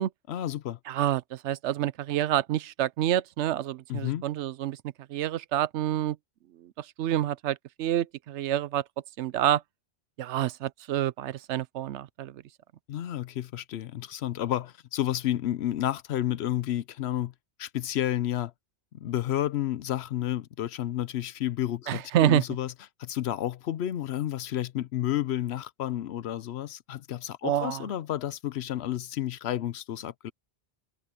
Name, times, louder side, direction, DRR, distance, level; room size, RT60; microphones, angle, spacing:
voice 1, 0.3-0.8 3.9-4.2 12.9-17.3 17.6-18.5 18.9-22.7 23.0-30.3, left 12 dB, 70° left, 0.9 m, -31 dB
voice 2, 0.9-4.8 5.1-6.2 6.6-8.8 9.2-9.6 10.2-12.4 21.9-22.4 27.4-27.8, right 12 dB, 85° right, 0.9 m, -28 dB
omnidirectional pair, 1.2 m